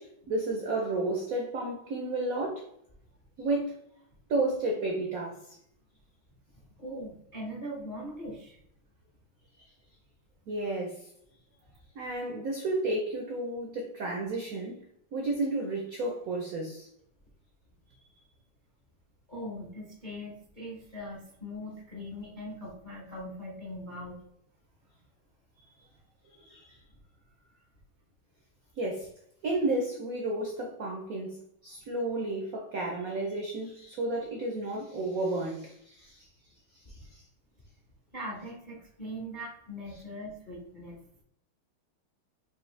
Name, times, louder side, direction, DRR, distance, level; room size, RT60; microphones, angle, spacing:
voice 1, 0.0-2.7 3.4-3.8 4.3-5.4 10.5-11.1 11.9-14.9 15.1-16.9 25.8-25.9 26.3-26.8 28.8-29.1 29.4-31.4 31.6-36.3 36.7-37.2, right 2 dB, 75° right, 1 dB, 0.8 m, -32 dB
voice 2, 6.8-8.6 10.7-10.8 19.3-24.2 38.1-41.0, equal, 45° left, -4 dB, 0.6 m, -41 dB
5.2 x 2.7 x 3.2 m, 0.75 s
omnidirectional pair, 2.3 m